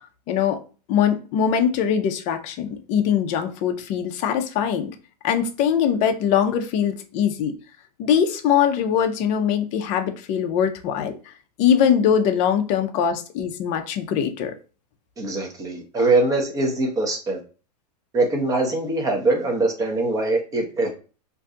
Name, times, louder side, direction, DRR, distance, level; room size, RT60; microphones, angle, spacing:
voice 1, 0.3-0.6 0.9-4.9 5.2-7.6 8.0-11.2 11.6-14.5 16.0-16.1, left 8 dB, 35° left, 0.5 m, -22 dB
voice 2, 15.2-17.4 18.1-20.9, right 2 dB, 15° right, 0.8 m, -22 dB
2.6 x 2.3 x 3.7 m
hypercardioid pair, 135°, 21 cm